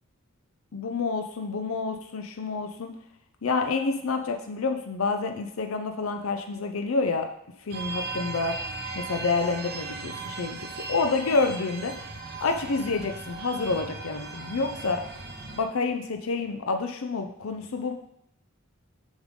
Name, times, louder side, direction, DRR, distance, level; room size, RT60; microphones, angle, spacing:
voice 1, 0.7-2.9 3.4-7.3 7.6-8.6 8.9-11.9 12.4-15.0 15.6-17.9, left 4 dB, 80° left, 5 dB, 0.5 m, -28 dB
sound 1, 7.7-15.6, right 3 dB, 50° right, 0.8 m, -37 dB
7.2 x 5.3 x 3.7 m, 0.72 s
head